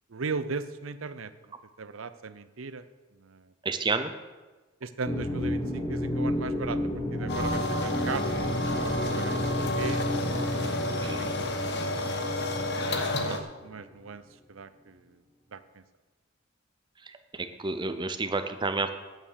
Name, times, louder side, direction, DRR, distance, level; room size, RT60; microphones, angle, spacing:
voice 1, 0.1-1.3 1.8-2.8 3.2-3.5 4.8-6.8 7.1-10.0 11.2-11.3 12.7-14.2 14.5-15.0 15.5-15.8, right 4 dB, 85° right, 13 dB, 0.7 m, -37 dB
voice 2, 3.6-4.1 11.0-11.3 13.0-13.1 17.0-18.9, right 3 dB, 25° right, 8 dB, 0.7 m, -30 dB
sound 1, 5.1-13.6, left 1 dB, 25° left, 1.3 m, -32 dB
sound 2, 7.3-13.4, left 1 dB, 55° left, 1.1 m, -30 dB
9.4 x 8.8 x 6.6 m, 1.2 s
head